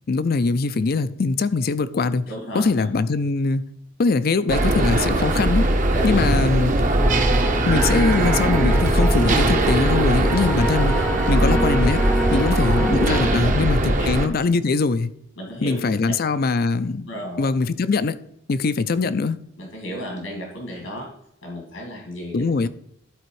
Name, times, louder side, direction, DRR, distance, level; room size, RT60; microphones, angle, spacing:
voice 1, 0.1-2.2 2.5-3.6 4.0-5.7 6.0-6.7 7.7-11.0 11.3-12.0 12.3-15.1 15.6-17.1 17.4-18.2 18.5-19.4 22.3-22.7, left 4 dB, 50° left, 0.5 m, -22 dB
voice 2, 2.3-2.7 5.9-6.2 12.3-12.4 13.3-13.6 14.0-14.1 15.4-15.8 17.1-17.5 19.6-21.1 21.4-22.4, equal, 80° left, 2.3 m, -33 dB
sound 1, 4.5-14.3, right 1 dB, 40° right, 0.8 m, -20 dB
sound 2, 6.9-13.3, equal, 5° left, 0.7 m, -27 dB
12.0 x 4.2 x 4.7 m
head